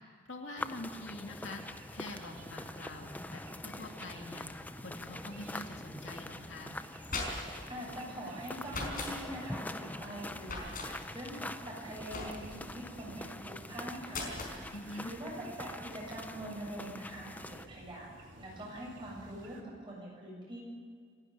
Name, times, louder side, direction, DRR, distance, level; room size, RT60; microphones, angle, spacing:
voice 1, 0.3-1.6 1.9-4.5 4.8-6.8 14.7-15.1, left 2 dB, 65° left, 2 dB, 2.4 m, -45 dB
sound 1, 0.6-17.7, left 1 dB, 10° left, 0.5 m, -44 dB
sound 2, 1.6-19.6, right 2 dB, 65° right, 3.5 m, -54 dB
sound 3, 7.0-7.7 8.7-9.1 10.4-10.9 12.1-12.6 14.1-14.6, left 3 dB, 45° left, 4.7 m, -38 dB
voice 2, 7.4-14.3 15.0-20.6, right 1 dB, 25° right, -3 dB, 7.6 m, -44 dB
27.5 x 12.0 x 9.6 m, 2.1 s
head